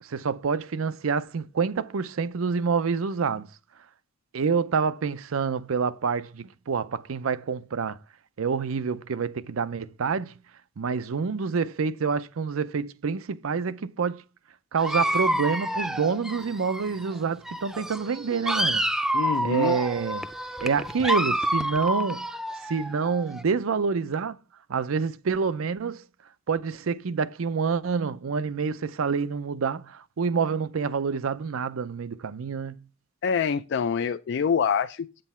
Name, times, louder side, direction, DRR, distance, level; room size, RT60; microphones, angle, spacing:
voice 1, 0.0-3.5 4.3-8.0 8.4-10.3 10.8-14.2 14.7-18.8 19.4-20.3 20.6-22.3 22.6-24.4 24.7-26.0 26.5-32.7, right 5 dB, 85° right, 0.5 m, -27 dB
Dog, 14.8-17.2 17.4-23.4, equal, ahead, 0.5 m, -29 dB
voice 2, 19.1-19.8 33.2-35.2, left 6 dB, 60° left, 0.4 m, -26 dB
8.1 x 7.7 x 4.3 m
head